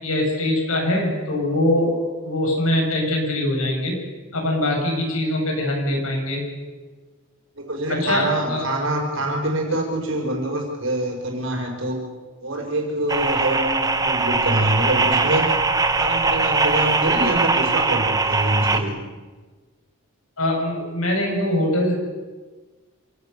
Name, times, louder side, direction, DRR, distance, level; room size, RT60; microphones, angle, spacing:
voice 1, 0.0-4.0 4.3-6.4 7.9-8.7 20.4-21.9, left 1 dB, 75° left, 1 dB, 7.1 m, -22 dB
voice 2, 7.6-12.1 12.4-15.5 15.9-19.0, right 1 dB, 60° right, 1 dB, 5.3 m, -25 dB
sound 1, 13.1-18.8, right 3 dB, 15° right, 1.2 m, -21 dB
27.5 x 17.5 x 6.8 m, 1.3 s
head